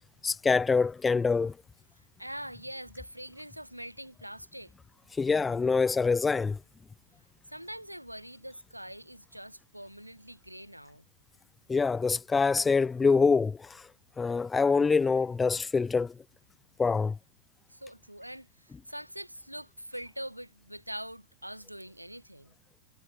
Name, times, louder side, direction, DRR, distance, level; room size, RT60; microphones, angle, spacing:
voice 1, 0.2-1.5 5.2-6.6 11.7-13.8 14.2-16.1 16.8-17.2, left 4 dB, 15° left, 0.3 m, -25 dB
voice 2, 1.9-4.7 7.5-11.1 17.7-22.5, equal, 90° right, 1.5 m, -43 dB
figure-of-eight pair, 90°, 0 cm